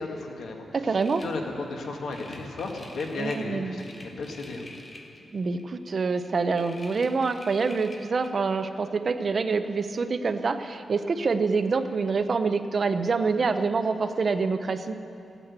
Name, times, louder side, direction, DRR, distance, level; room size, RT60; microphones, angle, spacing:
voice 1, 0.0-4.8, left 3 dB, 80° left, 1 dB, 1.7 m, -34 dB
voice 2, 0.7-1.2 3.2-3.9 5.3-15.0, right 4 dB, 40° right, 9 dB, 0.6 m, -26 dB
sound 1, 1.0-5.7 6.0-8.3, left 2 dB, 25° left, 1.0 m, -48 dB
14.5 x 9.0 x 8.0 m, 2.8 s
wide cardioid pair, 175°, 0 cm